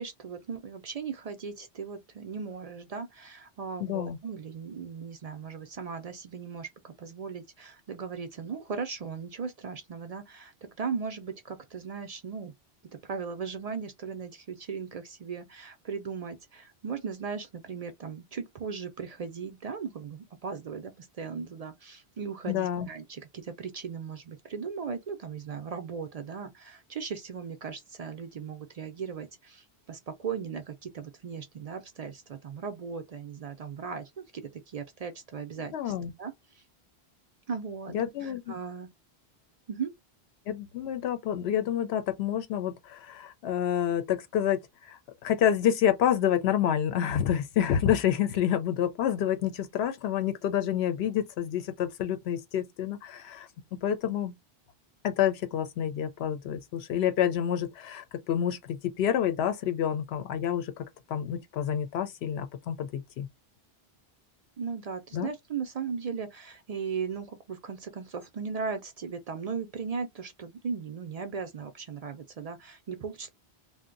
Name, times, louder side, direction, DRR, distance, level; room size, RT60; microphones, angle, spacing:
voice 1, 0.0-12.5 12.9-36.6 37.5-37.9 38.2-38.9 39.7-39.9 64.6-73.3, right 6 dB, 55° right, 0.4 m, -37 dB
voice 2, 3.8-4.2 22.5-22.9 35.7-36.1 37.9-38.6 40.5-54.3 55.0-63.3 65.1-65.3, left 10 dB, 80° left, 0.8 m, -28 dB
2.6 x 2.1 x 3.8 m
omnidirectional pair, 1.1 m